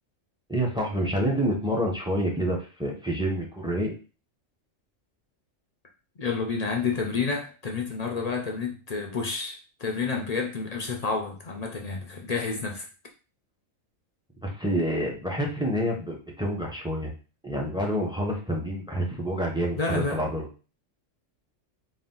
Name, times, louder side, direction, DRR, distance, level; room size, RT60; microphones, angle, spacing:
voice 1, 0.5-3.9 14.4-17.1 17.4-20.5, equal, 5° right, 0.7 m, -28 dB
voice 2, 6.2-12.9 19.7-20.2, left 4 dB, 45° left, 0.5 m, -30 dB
4.2 x 2.4 x 3.7 m
omnidirectional pair, 1.3 m